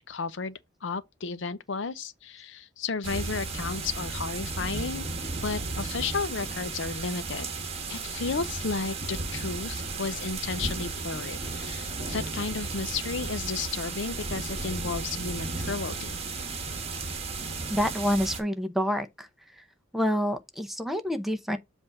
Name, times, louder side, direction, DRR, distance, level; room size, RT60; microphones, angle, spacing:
voice 1, 0.0-5.0 5.4-7.5 7.9-16.2, left 4 dB, 70° left, 0.6 m, -33 dB
sound 1, 3.0-18.4, right 3 dB, 30° right, 1.5 m, -34 dB
voice 2, 17.7-19.3 19.9-21.6, equal, ahead, 0.7 m, -27 dB
7.6 x 2.6 x 5.8 m
head